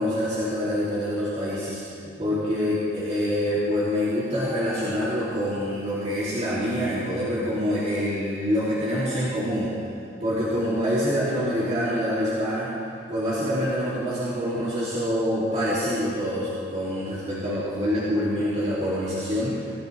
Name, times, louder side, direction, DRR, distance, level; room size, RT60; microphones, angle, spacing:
voice 1, 0.0-9.7 10.2-12.8 13.1-19.7, equal, 35° right, -10 dB, 3.0 m, -26 dB
24.5 x 15.5 x 3.5 m, 2.5 s
head